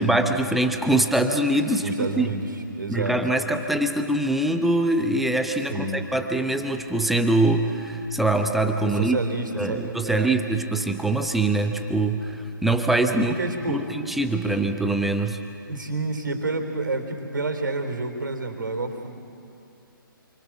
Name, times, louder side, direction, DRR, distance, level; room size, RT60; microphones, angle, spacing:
voice 1, 0.0-2.3 2.9-9.2 9.6-13.3 13.7-13.8 14.2-15.4, right 2 dB, ahead, 6 dB, 0.9 m, -23 dB
voice 2, 1.8-2.5 2.8-3.2 5.7-6.0 8.9-10.3 13.1-13.8 15.7-19.2, right 3 dB, 65° right, 6 dB, 3.6 m, -29 dB
28.0 x 25.5 x 6.1 m, 2.6 s
figure-of-eight pair, 135°, 12 cm